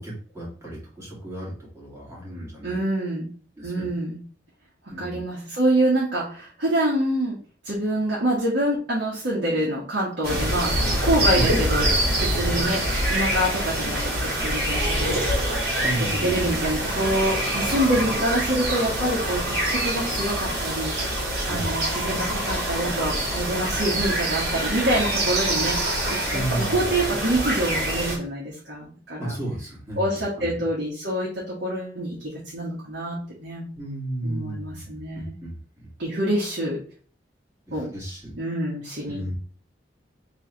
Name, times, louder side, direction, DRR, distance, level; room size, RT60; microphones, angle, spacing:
voice 1, 0.0-2.8 3.6-3.9 4.9-5.3 11.3-11.5 15.8-16.5 21.5-21.8 26.3-26.9 29.2-30.0 30.4-30.6 33.8-35.9 37.7-38.3 39.1-39.3, right 1 dB, 15° right, -5 dB, 1.9 m, -33 dB
voice 2, 2.6-3.4 3.6-4.2 4.9-7.4 7.6-11.9 12.2-15.2 15.8-25.8 26.1-29.3 30.0-33.7 34.2-35.3 36.0-36.8 37.7-37.9 38.4-39.3, right 1 dB, 80° right, -6 dB, 1.4 m, -26 dB
sound 1, 10.2-28.2, right 1 dB, 60° right, 2.2 m, -25 dB
3.4 x 3.1 x 4.4 m, 0.42 s
head